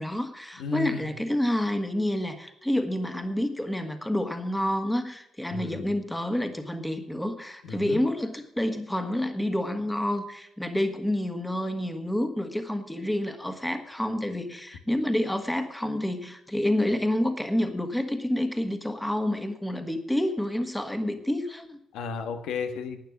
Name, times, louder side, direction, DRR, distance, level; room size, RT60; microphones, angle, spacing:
voice 1, 0.0-21.8, left 1 dB, 5° left, 7 dB, 1.6 m, -28 dB
voice 2, 0.6-1.1 5.5-5.9 7.6-8.0 21.9-23.0, left 5 dB, 90° left, 7 dB, 1.6 m, -34 dB
12.0 x 9.0 x 6.0 m, 0.79 s
cardioid pair, 90°, 0 cm